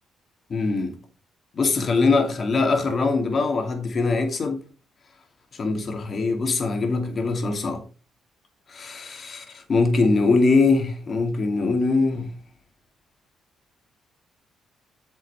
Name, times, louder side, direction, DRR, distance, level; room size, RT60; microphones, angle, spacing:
voice 1, 0.5-0.9 1.5-4.6 5.5-7.8 8.7-12.3, left 3 dB, 45° left, 2.6 m, -22 dB
8.6 x 6.3 x 4.4 m
cardioid pair, 90°, 0 cm